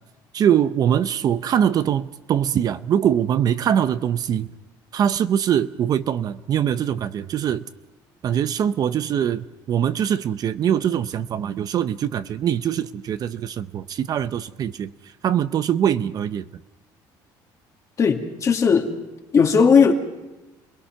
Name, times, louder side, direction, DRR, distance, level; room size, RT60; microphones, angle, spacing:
voice 1, 0.3-4.5 4.9-7.6 8.2-14.9 15.2-16.4, right 9 dB, 50° right, 0.7 m, -22 dB
voice 2, 18.0-18.9 19.3-19.9, left 6 dB, 40° left, 2.5 m, -17 dB
29.5 x 19.5 x 5.9 m
cardioid pair, 115°, 9 cm